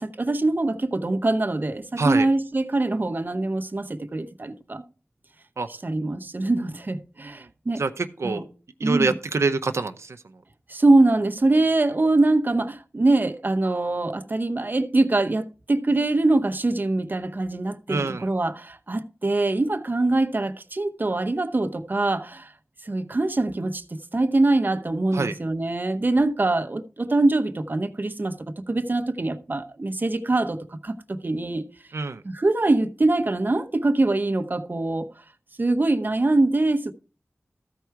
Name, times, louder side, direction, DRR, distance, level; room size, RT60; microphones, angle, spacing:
voice 1, 0.0-4.8 5.8-7.8 8.2-8.4 8.8-9.1 10.7-22.5 22.8-28.4 28.7-31.6 32.2-35.1 35.6-36.9, right 2 dB, 45° right, 0.8 m, -23 dB
voice 2, 2.0-2.3 5.6-5.7 7.2-7.5 7.8-8.4 8.8-10.2 17.9-18.3 25.1-25.4 31.9-32.2, right 3 dB, 80° right, 0.6 m, -26 dB
14.0 x 4.7 x 4.5 m
wide cardioid pair, 70°, 5 cm